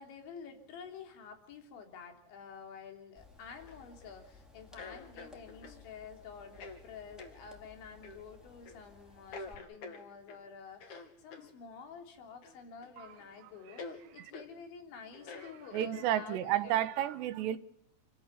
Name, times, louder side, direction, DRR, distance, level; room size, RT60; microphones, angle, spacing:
voice 1, 0.0-16.9, left 6 dB, 90° left, 5.7 m, -50 dB
sound 1, 3.2-9.5, left 4 dB, ahead, 3.4 m, -58 dB
sound 2, 3.6-4.2 4.8-5.8 6.5-6.8 7.2-7.4 8.0-8.2 8.7-8.8 9.3-10.4 10.8-11.5 12.4-12.9 13.2-13.3 13.8-14.0 14.3-14.5 15.1-16.2, left 4 dB, 50° left, 3.7 m, -47 dB
voice 2, 15.7-17.6, right 12 dB, 75° right, 3.2 m, -32 dB
29.5 x 14.0 x 9.5 m
omnidirectional pair, 5.1 m